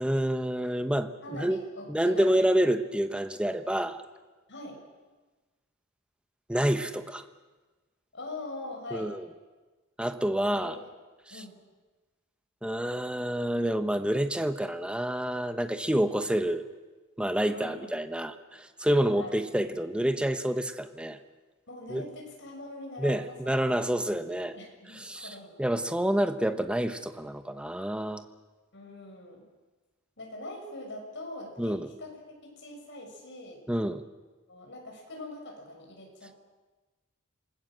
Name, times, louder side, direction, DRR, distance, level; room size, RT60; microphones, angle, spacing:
voice 1, 0.0-1.6 1.9-4.0 6.5-7.2 8.9-9.3 10.0-10.8 12.6-16.6 17.2-21.2 21.9-22.0 23.0-24.5 24.9-28.2 31.6-31.9 33.7-34.0, right 1 dB, 5° right, 9 dB, 1.0 m, -28 dB
voice 2, 1.2-2.3 4.5-4.8 8.1-9.1 10.6-10.9 11.3-11.6 17.4-17.9 19.1-19.4 21.7-23.9 24.2-25.7 28.7-29.4 30.2-32.1 32.4-33.6 34.5-36.4, left 2 dB, 55° left, 1 dB, 6.7 m, -43 dB
27.5 x 19.5 x 7.7 m, 1.2 s
head